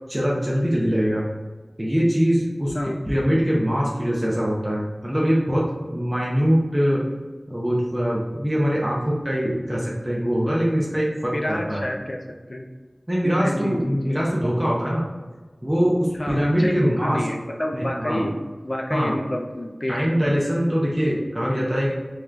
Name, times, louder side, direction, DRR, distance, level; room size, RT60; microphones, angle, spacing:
voice 1, 0.1-1.2 1.8-2.7 3.1-7.0 7.5-11.9 13.1-15.0 15.6-17.3 17.7-18.3 18.9-19.1 19.9-21.9, equal, 20° right, -5 dB, 0.8 m, -22 dB
voice 2, 11.3-12.2 12.5-12.7 13.2-14.3 16.1-18.4 18.6-20.0 20.2-20.7, left 1 dB, 50° left, 2 dB, 0.5 m, -29 dB
3.8 x 3.0 x 3.3 m, 1.3 s
wide cardioid pair, 45°, 0 cm